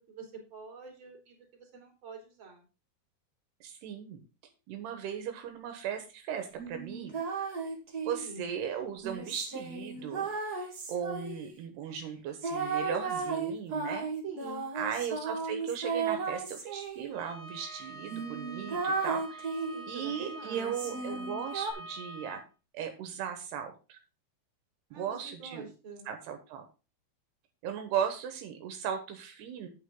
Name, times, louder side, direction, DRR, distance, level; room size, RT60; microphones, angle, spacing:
voice 1, 0.0-2.6 8.1-8.5 14.2-14.7 19.7-21.0 24.9-26.1, right 4 dB, 30° right, 1 dB, 3.4 m, -46 dB
voice 2, 3.6-4.2 4.7-7.1 8.0-10.3 10.9-14.1 14.7-19.6 19.9-22.4 22.7-24.0 24.9-25.7 26.1-26.6 27.6-29.7, right 8 dB, 80° right, 6 dB, 3.2 m, -37 dB
sound 1, 6.6-8.3 9.0-11.6 12.4-17.1 17.7-17.8 18.1-19.9 20.5-21.7, right 4 dB, 50° right, 1.1 m, -35 dB
Bowed string instrument, 17.1-22.4, right 2 dB, 90° left, 4.5 m, -46 dB
8.8 x 8.7 x 3.8 m, 0.31 s
omnidirectional pair, 4.7 m